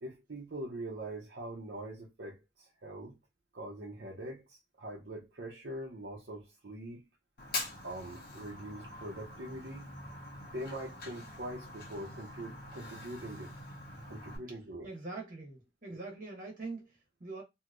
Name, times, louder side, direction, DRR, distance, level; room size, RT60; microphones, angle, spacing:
voice 1, 0.0-3.1 3.5-7.0 7.8-9.9 10.5-13.5 14.1-14.9, right 1 dB, 75° right, 0.7 m, -43 dB
Fire, 7.4-14.4, left 2 dB, 55° left, 1.0 m, -44 dB
voice 2, 14.8-17.4, right 3 dB, 50° right, 1.2 m, -43 dB
2.9 x 2.7 x 2.4 m
head